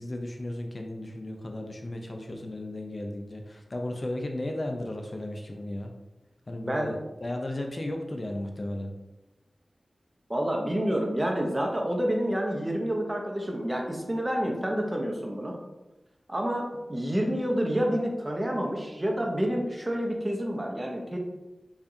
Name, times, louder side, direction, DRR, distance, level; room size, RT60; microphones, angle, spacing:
voice 1, 0.0-5.9 6.5-8.9, left 1 dB, 50° left, 3 dB, 0.5 m, -35 dB
voice 2, 10.3-15.6 16.3-21.2, equal, 30° right, 1 dB, 0.8 m, -28 dB
4.8 x 2.5 x 2.7 m, 1.0 s
cardioid pair, 45°, 0 cm